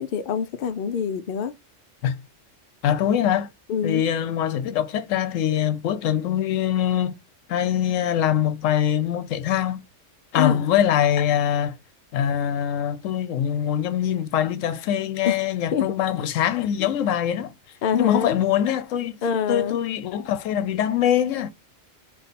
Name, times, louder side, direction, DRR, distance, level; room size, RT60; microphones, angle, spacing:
voice 1, 0.0-1.5 3.7-4.0 10.3-10.7 15.2-15.4 15.7-15.9 16.8-16.9 17.8-18.4 19.2-19.8, left 7 dB, 55° left, 0.6 m, -25 dB
voice 2, 2.8-3.5 3.8-7.1 7.5-9.8 10.3-11.7 12.1-17.5 17.9-19.2 19.5-21.5, left 10 dB, 90° left, 1.0 m, -23 dB
4.7 x 2.5 x 4.0 m
omnidirectional pair, 1.3 m